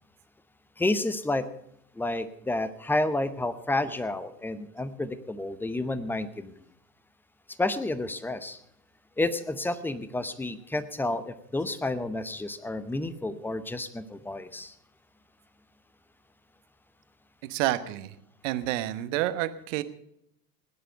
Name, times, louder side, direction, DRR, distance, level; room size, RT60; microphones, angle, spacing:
voice 1, 0.8-1.5 2.0-6.5 7.6-8.6 9.2-14.7, left 2 dB, 5° left, 14 dB, 0.7 m, -30 dB
voice 2, 17.4-18.2 18.4-19.8, right 15 dB, 50° right, 12 dB, 1.2 m, -29 dB
17.5 x 10.0 x 5.4 m, 0.73 s
figure-of-eight pair, 90°, 49 cm